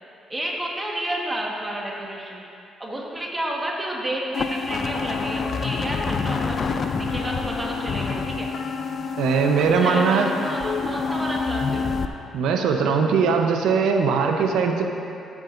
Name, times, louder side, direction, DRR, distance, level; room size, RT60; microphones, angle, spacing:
voice 1, 0.3-2.4 2.8-8.5 9.6-12.0, right 1 dB, 15° right, -2 dB, 1.4 m, -31 dB
sound 1, 4.3-12.0, left 5 dB, 50° left, 0.4 m, -27 dB
voice 2, 9.2-10.3 12.3-14.9, right 5 dB, 85° right, 3 dB, 0.8 m, -20 dB
14.0 x 7.3 x 2.6 m, 2.7 s
cardioid pair, 90°, 0 cm